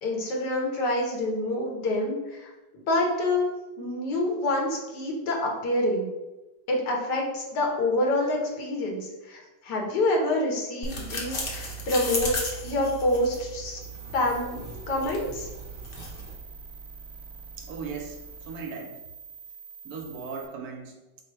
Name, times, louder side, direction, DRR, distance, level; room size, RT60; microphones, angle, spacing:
voice 1, 0.0-2.5 2.9-3.4 3.8-6.1 6.7-12.3 12.6-13.8 14.1-15.5, left 1 dB, 80° left, 0 dB, 1.5 m, -27 dB
sound 1, 10.8-16.4, equal, 45° left, 0.8 m, -35 dB
sound 2, 13.8-20.5, right 5 dB, ahead, 1.0 m, -45 dB
voice 2, 17.6-19.0 19.8-21.2, right 5 dB, 70° right, 3 dB, 1.0 m, -38 dB
4.9 x 2.1 x 4.4 m, 1.1 s
omnidirectional pair, 1.8 m